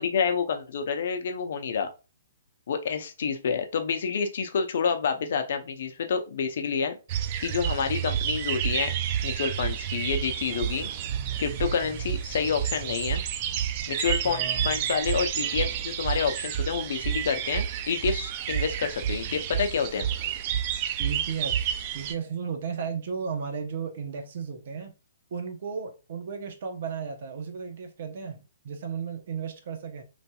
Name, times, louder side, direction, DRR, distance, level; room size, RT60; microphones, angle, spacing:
voice 1, 0.0-1.9 2.7-7.0 7.4-8.9 9.2-10.9 11.4-13.2 13.9-20.1, left 6 dB, 60° left, 0.5 m, -28 dB
sound 1, 7.1-22.1, right 9 dB, 40° right, 0.3 m, -30 dB
voice 2, 14.2-15.0 21.0-24.9 25.3-30.0, right 6 dB, 55° right, 0.7 m, -35 dB
3.2 x 2.7 x 2.2 m
hypercardioid pair, 140°, 0 cm